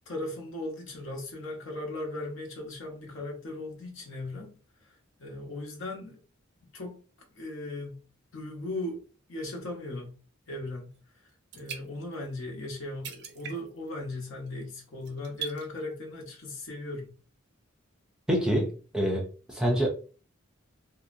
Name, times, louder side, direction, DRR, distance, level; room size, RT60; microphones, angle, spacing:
voice 1, 0.1-4.6 5.2-6.2 6.6-7.0 7.3-8.0 8.3-9.0 9.3-10.2 10.5-11.0 11.5-17.1, left 2 dB, 70° left, 0.8 m, -37 dB
sound 1, 10.9-11.0 11.3-12.3 12.7-12.8 13.0-13.9 14.2-14.5 15.0-15.8 16.4-16.5, right 8 dB, 55° right, 0.4 m, -41 dB
voice 2, 18.3-19.9, equal, 5° right, 0.5 m, -26 dB
2.7 x 2.1 x 2.5 m
head